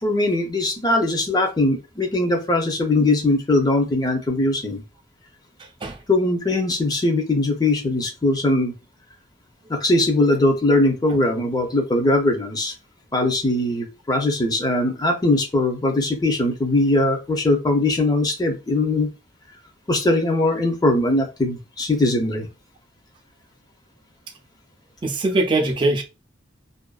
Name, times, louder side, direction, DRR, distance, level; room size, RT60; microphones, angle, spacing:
voice 1, 0.0-4.8 6.1-8.7 9.7-12.7 13.1-19.1 19.9-22.5, left 2 dB, 20° left, 0.6 m, -20 dB
voice 2, 5.6-6.0 25.0-26.0, right 2 dB, 25° right, 0.4 m, -22 dB
2.5 x 2.2 x 2.3 m
head